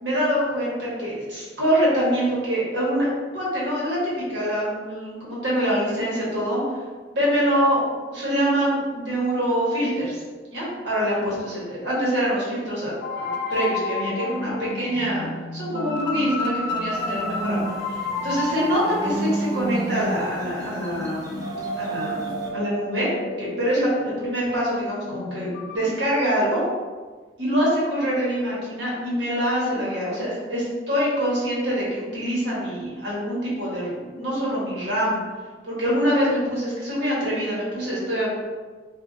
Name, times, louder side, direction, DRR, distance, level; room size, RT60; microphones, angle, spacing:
voice 1, 0.0-6.6 7.1-7.8 8.1-10.2 10.5-15.3 15.5-17.6 18.2-21.4 21.8-23.1 23.4-26.6 27.4-35.2 35.6-38.3, equal, 75° right, -6 dB, 1.2 m, -25 dB
sound 1, 13.0-25.8, left 2 dB, 65° left, 0.4 m, -31 dB
sound 2, 16.9-22.5, right 2 dB, 20° right, 0.4 m, -32 dB
3.6 x 2.4 x 2.5 m, 1.4 s
head